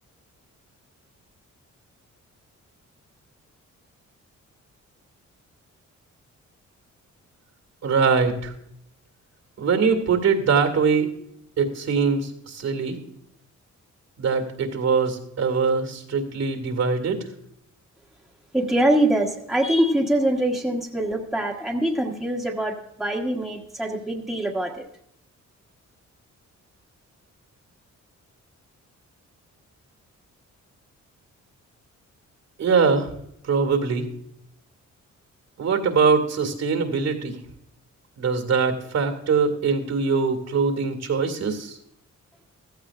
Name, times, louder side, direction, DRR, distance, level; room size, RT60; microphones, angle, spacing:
voice 1, 7.8-8.5 9.6-11.1 11.6-13.0 14.2-17.2 32.6-33.1 33.5-34.1 35.6-37.4 38.2-41.8, right 5 dB, 65° right, 6 dB, 2.1 m, -22 dB
voice 2, 18.5-24.8, right 1 dB, ahead, -1 dB, 1.5 m, -24 dB
15.5 x 14.0 x 2.5 m, 0.72 s
wide cardioid pair, 145°, 30 cm